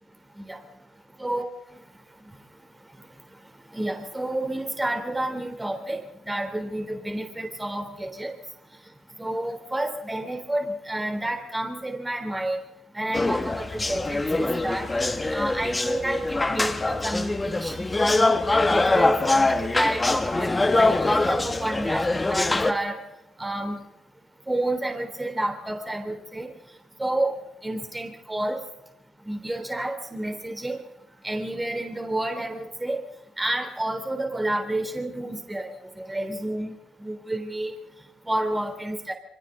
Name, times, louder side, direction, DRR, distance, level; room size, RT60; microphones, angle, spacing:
voice 1, 3.7-8.3 9.2-12.6 13.0-14.9 15.3-18.3 18.7-22.0 22.3-23.0 23.4-23.8 24.5-26.5 27.0-27.3 27.6-28.6 29.3-30.8 31.2-33.0 33.4-35.7 36.0-36.7 37.0-37.7 38.3-39.1, right 1 dB, 15° right, 4 dB, 3.5 m, -30 dB
sound 1, 13.1-22.7, left 2 dB, 20° left, 1.7 m, -23 dB
27.0 x 24.5 x 4.0 m, 0.86 s
cardioid pair, 90°, 0 cm